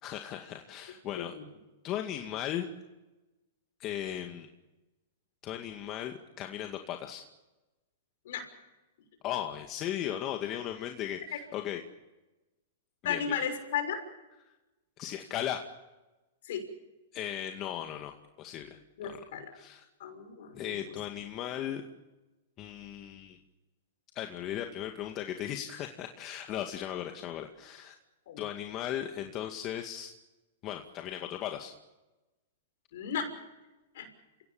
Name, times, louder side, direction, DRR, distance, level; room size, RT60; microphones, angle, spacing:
voice 1, 0.0-1.3 1.8-2.7 3.8-4.5 5.4-7.2 9.2-11.8 13.0-13.4 15.0-15.7 17.1-19.2 19.6-19.8 20.5-21.8 22.6-23.4 24.2-27.9 28.4-30.1 30.6-31.7, left 11 dB, 35° left, 4 dB, 2.2 m, -37 dB
voice 2, 1.1-1.4 8.2-8.5 13.0-14.0 16.4-16.7 19.0-19.5 20.0-20.8 28.3-28.4 32.9-33.3 33.9-34.1, left 7 dB, 65° left, 6 dB, 6.3 m, -34 dB
29.5 x 17.0 x 7.3 m, 1.1 s
hypercardioid pair, 125°, 0 cm